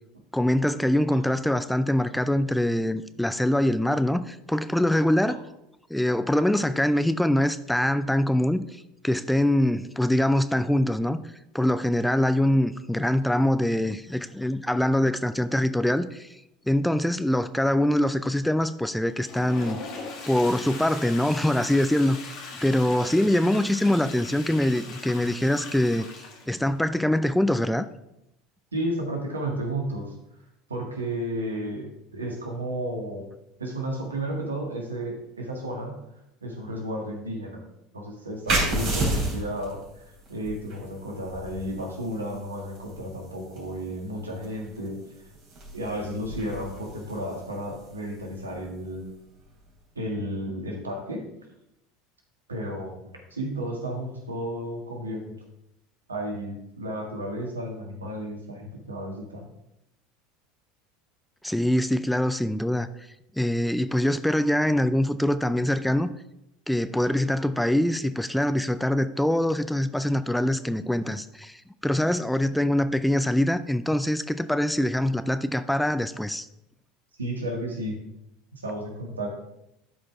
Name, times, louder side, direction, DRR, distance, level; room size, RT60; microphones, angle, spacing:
voice 1, 0.3-5.4 5.9-8.6 9.0-11.2 11.5-16.3 16.7-19.8 20.3-22.3 22.6-26.0 26.5-27.9 61.4-62.9 63.4-66.1 66.7-76.5, left 1 dB, 5° left, 12 dB, 0.4 m, -24 dB
Toilet flush, 19.1-26.7, left 4 dB, 55° left, 1.8 m, -40 dB
voice 2, 28.7-30.1 30.7-33.3 33.6-36.0 36.4-37.6 37.9-45.0 45.7-49.1 49.9-51.2 52.5-55.4 56.1-59.4 77.2-78.0 78.5-79.3, right 1 dB, 90° right, 1 dB, 1.7 m, -33 dB
sound 1, 38.5-49.7, right 2 dB, 50° right, 3.3 m, -33 dB
12.0 x 5.0 x 3.5 m, 0.85 s
hypercardioid pair, 75°, 0 cm